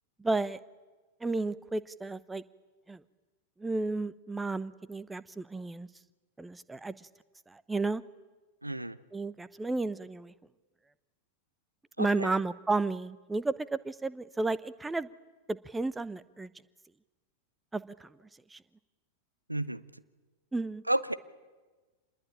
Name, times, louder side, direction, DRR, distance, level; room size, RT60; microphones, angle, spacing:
voice 1, 0.2-0.6 1.2-2.4 2.9-3.0 3.6-5.9 6.4-7.1 7.5-8.0 9.1-10.3 12.0-15.1 15.5-16.5 17.7-18.1 18.5-18.6 20.5-20.8, right 3 dB, 10° right, 17 dB, 0.9 m, -32 dB
voice 2, 8.6-9.0 12.0-12.4 19.5-20.0 20.9-21.1, right 1 dB, 85° right, 15 dB, 0.9 m, -32 dB
26.5 x 21.0 x 8.9 m, 1.3 s
figure-of-eight pair, 90°, 0 cm